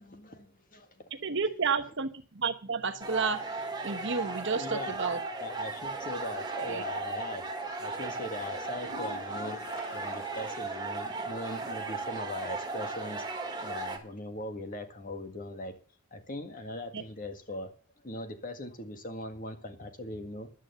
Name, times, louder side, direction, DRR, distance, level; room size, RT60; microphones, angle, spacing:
voice 1, 0.0-1.6 4.5-5.0 5.4-7.5 7.8-9.6 9.9-13.3 13.6-15.7 16.1-17.7 18.0-20.5, left 1 dB, 40° left, 7 dB, 1.8 m, -40 dB
voice 2, 1.2-2.1 2.3-5.2 6.7-6.8 16.9-17.0, right 5 dB, 55° right, 7 dB, 1.2 m, -31 dB
sound 1, 3.0-14.0, right 3 dB, 20° right, 1.7 m, -36 dB
sound 2, 8.7-11.0 11.3-11.4 11.9-12.0 15.7-15.8, left 3 dB, 60° left, 1.1 m, -48 dB
10.5 x 8.9 x 6.8 m, 0.39 s
head